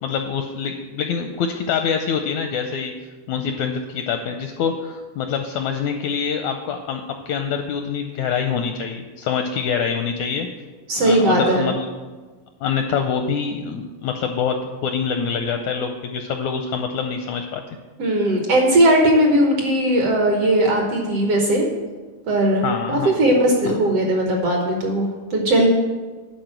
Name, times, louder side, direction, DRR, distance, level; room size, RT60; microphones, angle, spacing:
voice 1, 0.0-2.9 3.3-10.5 11.0-11.9 12.6-14.6 14.8-17.8 22.6-23.2 23.7-23.8, left 6 dB, 80° left, 6 dB, 1.7 m, -25 dB
voice 2, 10.9-11.7 18.0-21.6 22.3-25.7, right 1 dB, 60° right, 1 dB, 1.7 m, -18 dB
11.0 x 4.3 x 7.5 m, 1.3 s
omnidirectional pair, 3.9 m